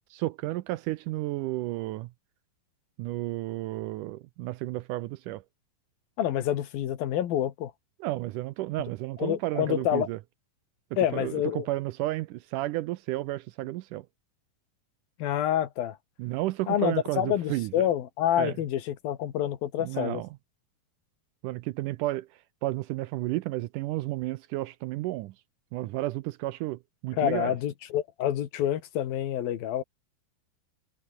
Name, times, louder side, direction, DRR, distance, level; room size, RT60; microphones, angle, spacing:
voice 1, 0.2-2.1 3.0-5.4 8.0-10.2 11.1-14.1 16.2-17.9 18.4-18.6 19.8-20.3 21.4-22.3 22.6-25.3 25.7-27.5, right 17 dB, 80° right, 2.0 m, -32 dB
voice 2, 6.2-7.7 9.2-10.1 11.0-11.7 15.2-16.0 16.7-20.2 27.1-29.8, left 11 dB, 85° left, 3.5 m, -27 dB
omnidirectional pair, 4.1 m